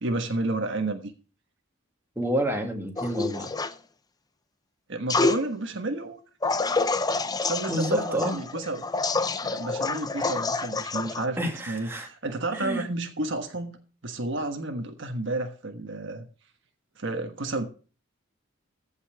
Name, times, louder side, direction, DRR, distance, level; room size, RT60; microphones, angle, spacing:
voice 1, 0.0-1.1 4.9-6.2 7.4-8.8 9.4-11.4 11.7-13.7 14.0-16.3 17.0-17.6, right 2 dB, 60° right, 1.3 m, -31 dB
voice 2, 2.2-3.5 7.7-8.4 11.4-12.1 12.5-12.8, equal, 10° right, 2.2 m, -29 dB
sound 1, 3.0-3.7 5.1-5.4 6.4-11.2, left 3 dB, 20° left, 0.6 m, -27 dB
15.0 x 5.6 x 5.9 m
head